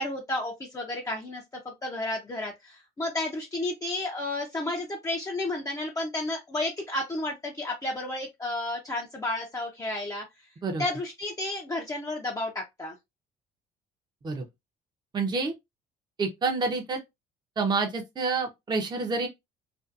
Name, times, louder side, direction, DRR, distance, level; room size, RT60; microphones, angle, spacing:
voice 1, 0.0-10.2 10.8-13.0, left 2 dB, 20° left, 0.5 m, -32 dB
voice 2, 15.1-15.5 16.2-17.0 17.6-19.3, right 4 dB, 25° right, 0.6 m, -28 dB
2.6 x 2.4 x 2.3 m
cardioid pair, 110°, 17 cm